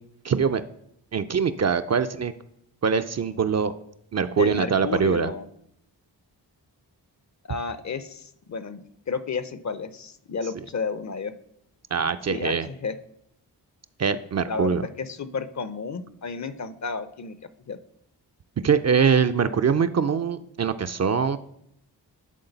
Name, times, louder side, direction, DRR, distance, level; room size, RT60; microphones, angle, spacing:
voice 1, 0.2-0.6 1.1-2.3 2.8-3.7 4.1-5.3 11.9-12.7 14.0-14.9 18.6-21.4, right 6 dB, 40° right, 9 dB, 0.4 m, -23 dB
voice 2, 4.3-5.5 7.4-8.8 9.1-11.3 12.3-13.0 14.5-17.4 17.7-17.8, left 5 dB, 40° left, 12 dB, 0.6 m, -32 dB
11.0 x 3.8 x 4.0 m, 0.74 s
cardioid pair, 45°, 43 cm